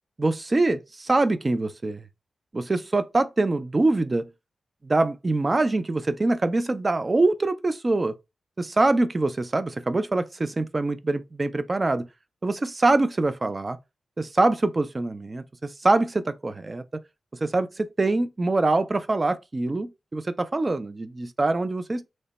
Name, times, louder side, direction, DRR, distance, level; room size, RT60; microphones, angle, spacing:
voice 1, 0.2-2.0 2.5-4.3 4.8-8.2 8.6-12.1 12.4-13.8 14.2-15.4 15.8-16.8 17.4-22.1, right 2 dB, 35° right, 0.4 m, -24 dB
3.2 x 2.1 x 3.9 m
cardioid pair, 65°, 0 cm